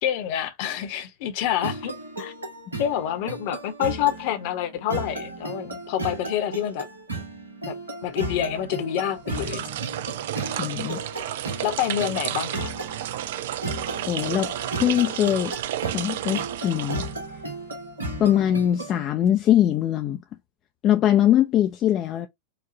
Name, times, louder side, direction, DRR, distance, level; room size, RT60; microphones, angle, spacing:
voice 1, 0.0-1.9 2.2-2.3 2.8-6.9 7.1-7.2 7.7-7.8 8.0-9.7 11.6-12.7, left 11 dB, 45° left, 0.9 m, -27 dB
sound 1, 1.6-19.1, right 2 dB, 75° right, 1.4 m, -35 dB
sound 2, 9.2-17.6, right 12 dB, 55° right, 0.3 m, -32 dB
voice 2, 10.6-11.0 14.1-14.5 14.8-15.5 15.9-17.1 18.2-20.2 20.8-22.3, left 11 dB, 30° left, 0.5 m, -22 dB
5.0 x 2.4 x 2.7 m
figure-of-eight pair, 90°, 0 cm